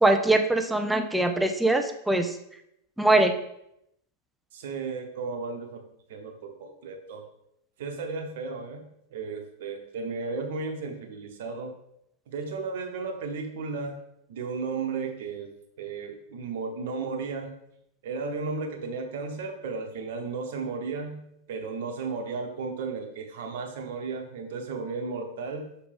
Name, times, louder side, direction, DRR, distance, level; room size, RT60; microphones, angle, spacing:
voice 1, 0.0-2.3 3.0-3.3, right 2 dB, 5° right, 6 dB, 0.6 m, -22 dB
voice 2, 4.5-5.8 6.1-7.2 7.8-11.7 12.3-14.0 14.3-15.5 15.8-17.5 18.0-21.2 21.5-25.7, right 4 dB, 55° right, 4 dB, 1.1 m, -34 dB
6.9 x 4.9 x 3.5 m, 0.77 s
figure-of-eight pair, 90°, 0 cm